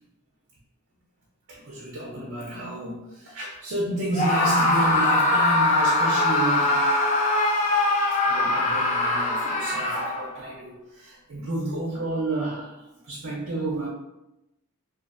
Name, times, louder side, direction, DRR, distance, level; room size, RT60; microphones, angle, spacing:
voice 1, 1.5-6.9 8.3-13.9, right 2 dB, 60° right, -3 dB, 0.5 m, -31 dB
Screaming, 4.1-10.4, left 2 dB, 30° left, 0.3 m, -22 dB
2.5 x 2.4 x 2.4 m, 0.90 s
head